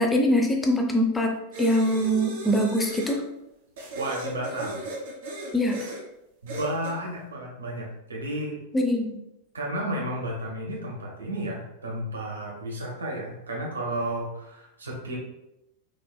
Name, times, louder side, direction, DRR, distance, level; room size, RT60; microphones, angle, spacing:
voice 1, 0.0-1.3 1.6-3.2 5.5-5.9 8.7-9.2, equal, 10° left, 3 dB, 0.6 m, -23 dB
sound 1, 1.5-3.2 3.8-6.0 6.5-7.0, right 1 dB, 55° right, 1.3 m, -36 dB
voice 2, 4.0-4.8 6.4-8.6 9.5-15.2, right 1 dB, 70° right, -1 dB, 1.2 m, -32 dB
5.1 x 4.1 x 2.2 m, 0.88 s
figure-of-eight pair, 90°, 0 cm